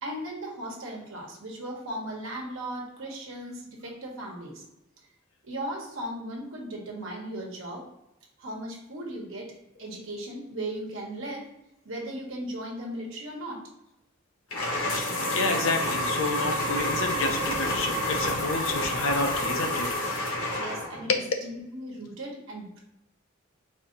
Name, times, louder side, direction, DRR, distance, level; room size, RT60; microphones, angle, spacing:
voice 1, 0.0-4.6 5.4-7.8 8.4-9.5 9.8-11.5 11.8-13.6 20.5-22.8, right 1 dB, 65° right, -1 dB, 1.3 m, -37 dB
sound 1, 14.5-21.1, left 1 dB, 85° left, 1.5 m, -29 dB
voice 2, 14.9-19.9 21.1-21.2, left 3 dB, 65° left, 4 dB, 0.7 m, -29 dB
4.3 x 2.7 x 3.9 m, 0.88 s
head